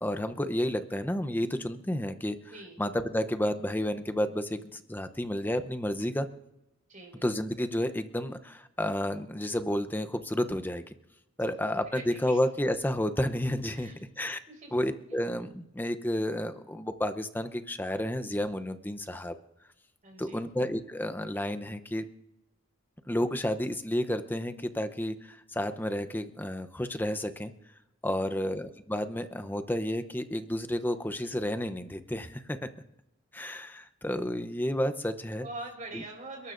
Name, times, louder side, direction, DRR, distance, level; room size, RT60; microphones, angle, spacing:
voice 1, 0.0-2.4 2.8-6.3 7.2-10.8 11.4-14.4 14.7-19.3 20.2-22.0 23.1-27.5 28.0-32.7 33.3-35.5 35.9-36.0, left 1 dB, 10° left, 10 dB, 0.7 m, -31 dB
voice 2, 6.9-7.3 11.4-12.4 13.7-14.0 14.5-14.7 15.1-15.2 20.0-20.4 28.2-28.5 35.4-36.5, right 2 dB, 40° right, 1 dB, 4.9 m, -44 dB
29.5 x 12.5 x 2.6 m, 0.90 s
head